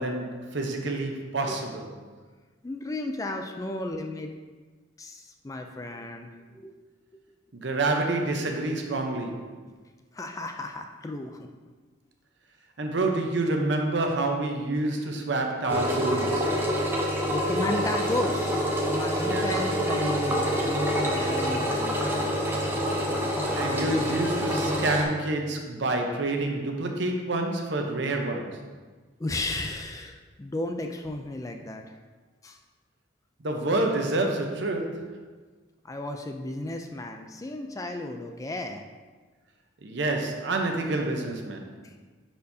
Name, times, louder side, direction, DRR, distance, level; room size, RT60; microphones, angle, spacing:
voice 1, 0.0-1.9 7.5-9.6 12.8-16.5 19.2-19.5 23.5-28.7 33.4-35.2 39.8-41.8, right 2 dB, 65° right, 3 dB, 0.8 m, -28 dB
voice 2, 2.6-4.4 5.0-6.7 10.1-11.5 16.9-22.3 23.6-23.7 29.2-32.0 32.4-32.6 35.8-38.8 41.8-41.9, left 2 dB, 15° left, 4 dB, 0.3 m, -34 dB
Engine, 15.7-25.0, equal, 10° right, 0.7 m, -27 dB
10.0 x 4.4 x 2.7 m, 1.4 s
head